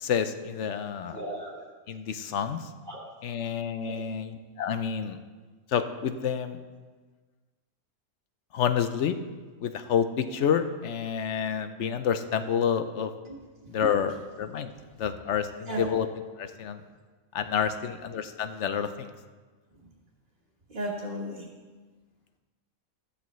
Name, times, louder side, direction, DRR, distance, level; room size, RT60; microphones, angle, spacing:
voice 1, 0.0-1.2 1.9-2.6 3.2-5.2 5.7-6.6 8.5-9.2 9.6-13.1 13.7-14.7 15.0-16.1 16.4-16.8 17.3-19.1, left 8 dB, 65° left, 10 dB, 0.9 m, -29 dB
voice 2, 1.1-1.7 2.9-3.0 3.8-4.0 13.3-13.4 15.7-15.8 20.7-21.5, right 1 dB, 40° right, -7 dB, 1.8 m, -35 dB
13.5 x 11.5 x 3.1 m, 1.4 s
omnidirectional pair, 1.5 m